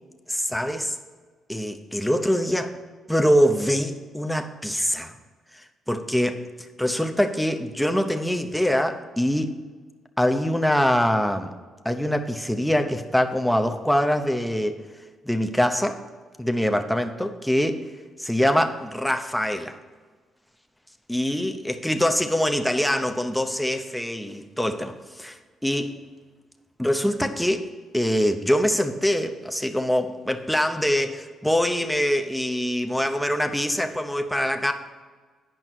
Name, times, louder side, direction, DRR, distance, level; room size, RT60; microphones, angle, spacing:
voice 1, 0.3-1.0 1.5-2.7 3.1-5.2 5.5-6.4 6.8-9.5 10.2-11.5 11.8-14.8 15.2-16.0 16.4-17.9 18.2-19.8 21.1-26.0 26.8-27.7 27.9-34.7, equal, ahead, 5 dB, 0.8 m, -24 dB
9.2 x 5.4 x 6.2 m, 1.5 s
cardioid pair, 90°, 0 cm